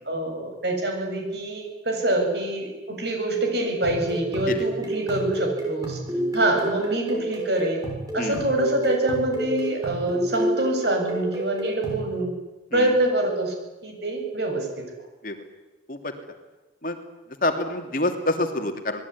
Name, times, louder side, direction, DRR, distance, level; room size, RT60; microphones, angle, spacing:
voice 1, 0.1-6.0 6.3-7.8 8.1-12.3 12.7-13.5 13.8-14.7, right 1 dB, 65° right, 3 dB, 7.7 m, -25 dB
sound 1, 3.6-12.1, right 1 dB, 20° right, 7.1 m, -30 dB
voice 2, 17.4-19.0, left 2 dB, 45° left, 6 dB, 2.9 m, -26 dB
26.0 x 20.0 x 9.8 m, 1.1 s
head